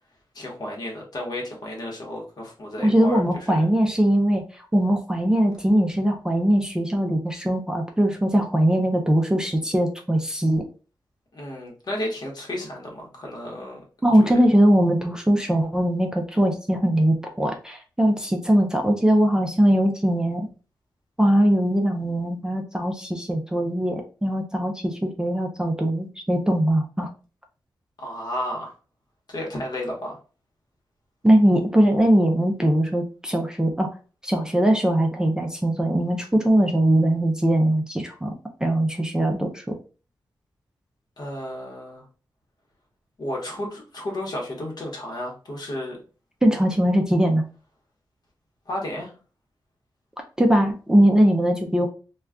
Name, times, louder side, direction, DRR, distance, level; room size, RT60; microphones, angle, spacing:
voice 1, 0.3-3.6 11.3-13.8 14.2-14.4 28.0-28.7 29.3-30.2 41.2-42.0 43.2-46.0 48.7-49.1, left 1 dB, 60° left, -1 dB, 1.0 m, -32 dB
voice 2, 2.8-4.4 4.7-10.6 14.0-20.5 21.2-27.1 31.2-33.9 34.2-38.3 38.6-39.7 46.4-47.4 50.4-51.9, right 1 dB, 10° right, 2 dB, 0.4 m, -21 dB
2.3 x 2.2 x 3.5 m, 0.36 s
wide cardioid pair, 125°, 8 cm